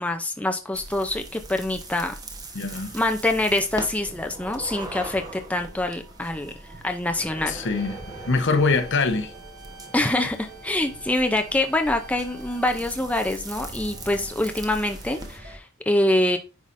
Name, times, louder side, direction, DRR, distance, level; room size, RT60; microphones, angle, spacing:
voice 1, 0.0-2.2 2.9-6.5 6.8-7.6 9.9-16.4, left 1 dB, 5° left, 0.5 m, -25 dB
sound 1, 0.7-15.4, right 2 dB, 20° right, 1.0 m, -41 dB
voice 2, 2.5-3.0 7.5-8.0 8.3-9.3, left 4 dB, 60° left, 0.8 m, -23 dB
sound 2, 3.4-15.6, right 2 dB, 55° right, 1.6 m, -49 dB
sound 3, 7.8-12.8, right 5 dB, 85° right, 1.0 m, -47 dB
9.5 x 4.9 x 2.6 m
head